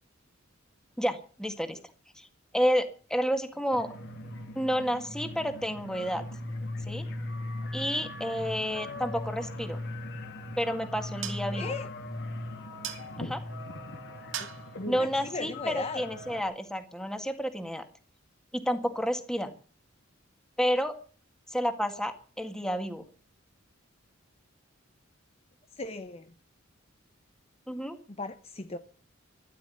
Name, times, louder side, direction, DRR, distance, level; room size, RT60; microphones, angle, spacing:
voice 1, 1.0-1.8 2.2-2.3 2.5-3.9 4.6-6.2 6.9-7.1 7.7-9.8 10.6-11.7 13.2-13.4 14.9-17.8 18.5-19.5 20.6-20.9 21.5-23.0 27.7-28.0, equal, 5° left, 1.9 m, -30 dB
sound 1, 3.7-16.4, left 1 dB, 60° left, 2.6 m, -39 dB
sound 2, 10.0-16.5, right 9 dB, 70° right, 2.4 m, -45 dB
voice 2, 11.5-11.9 14.4-14.5 14.8-16.1 25.8-26.3 28.1-28.8, left 3 dB, 30° left, 0.9 m, -37 dB
12.5 x 12.0 x 9.4 m
head